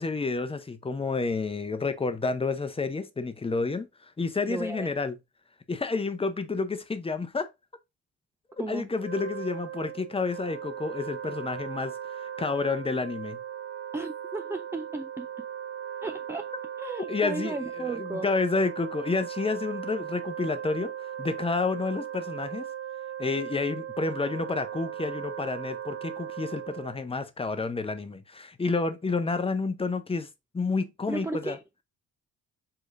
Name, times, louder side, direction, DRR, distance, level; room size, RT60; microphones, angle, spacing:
voice 1, 0.0-3.9 4.2-5.2 5.7-7.5 8.7-13.4 17.1-22.7 23.2-30.3 30.5-31.6, left 3 dB, 20° left, 0.7 m, -30 dB
voice 2, 4.5-4.9 8.6-8.9 13.9-15.4 16.0-16.5 16.8-18.3 31.1-31.6, right 3 dB, 10° right, 0.3 m, -35 dB
Wind instrument woodwind instrument, 8.9-27.0, right 9 dB, 45° right, 1.1 m, -38 dB
4.8 x 3.8 x 2.6 m
cardioid pair, 90°, 30 cm